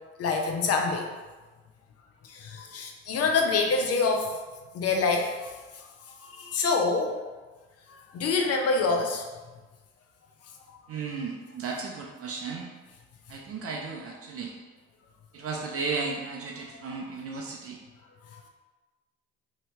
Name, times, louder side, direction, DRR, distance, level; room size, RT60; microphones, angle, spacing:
voice 1, 0.2-1.1 2.2-4.3 4.7-5.5 6.2-7.1 7.9-9.2 18.3-18.4, left 4 dB, 50° left, 3 dB, 0.7 m, -26 dB
voice 2, 10.9-12.7 13.3-14.5 15.3-17.8, right 4 dB, 45° right, 0 dB, 0.5 m, -34 dB
2.9 x 2.8 x 3.3 m, 1.3 s
hypercardioid pair, 65°, 32 cm